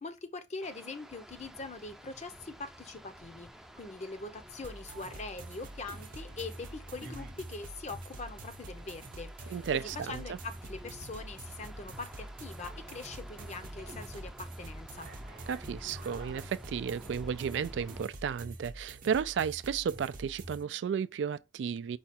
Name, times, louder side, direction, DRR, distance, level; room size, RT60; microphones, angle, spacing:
voice 1, 0.0-3.5 3.8-15.1, left 3 dB, 40° left, 0.7 m, -43 dB
sound 1, 0.6-18.0, equal, 5° right, 0.5 m, -51 dB
sound 2, 3.4-10.5, left 1 dB, 85° left, 1.2 m, -61 dB
sound 3, 4.6-20.6, right 2 dB, 50° right, 0.7 m, -46 dB
voice 2, 9.5-10.4 15.5-22.0, right 7 dB, 75° right, 0.3 m, -33 dB
4.8 x 2.3 x 4.2 m
head